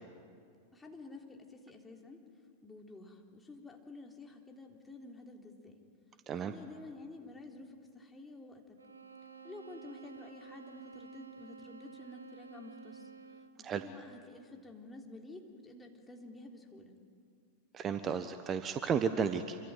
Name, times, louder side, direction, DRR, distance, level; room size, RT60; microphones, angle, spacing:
voice 1, 0.7-2.2 2.6-5.7 6.3-8.8 9.4-13.1 13.6-17.0, left 2 dB, 10° left, 1 dB, 3.5 m, -50 dB
sound 1, 8.8-13.7, right 6 dB, 75° right, 1.3 m, -52 dB
voice 2, 17.7-19.6, right 6 dB, 25° right, 10 dB, 1.2 m, -33 dB
27.0 x 24.5 x 9.1 m, 2.3 s
figure-of-eight pair, 90°, 0 cm